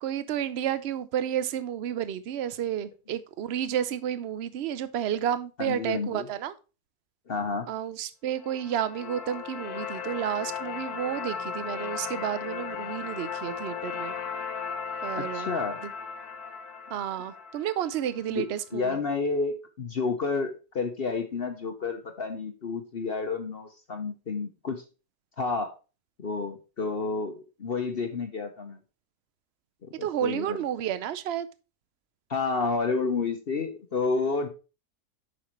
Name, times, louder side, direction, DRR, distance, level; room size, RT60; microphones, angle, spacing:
voice 1, 0.0-6.5 7.7-14.1 15.0-15.5 15.8-15.9 16.9-19.0 30.0-31.5, right 10 dB, 60° right, 0.7 m, -31 dB
voice 2, 5.6-6.3 7.3-7.7 15.2-15.8 18.3-18.5 18.7-24.8 25.4-25.7 26.2-28.8 29.8-30.6 32.3-34.5, left 4 dB, 45° left, 0.9 m, -30 dB
sound 1, 8.4-18.5, left 6 dB, 75° left, 1.4 m, -36 dB
8.5 x 6.2 x 3.1 m
omnidirectional pair, 1.7 m